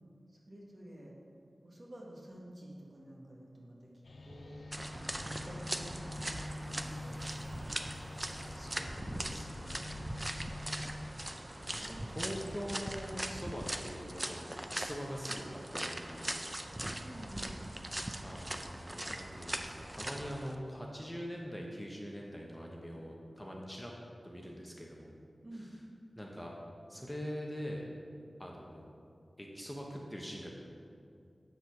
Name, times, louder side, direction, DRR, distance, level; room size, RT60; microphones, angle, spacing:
voice 1, 0.3-1.1 1.6-3.9 4.2-4.5 4.9-7.8 8.4-10.0 11.3-12.3 17.0-17.6 25.4-25.7, right 1 dB, 40° right, -3 dB, 1.6 m, -51 dB
sound 1, 4.0-11.1, left 2 dB, 80° left, 0.6 m, -46 dB
sound 2, 4.7-20.5, right 1 dB, 20° right, 0.5 m, -40 dB
voice 2, 8.5-10.1 11.7-16.4 18.2-23.9 24.2-25.2 25.6-25.7 26.2-26.5 26.9-27.9 28.4-28.9 29.4-30.5, equal, 5° left, -2 dB, 0.9 m, -43 dB
7.9 x 4.0 x 5.9 m, 2.4 s
cardioid pair, 50°, 0 cm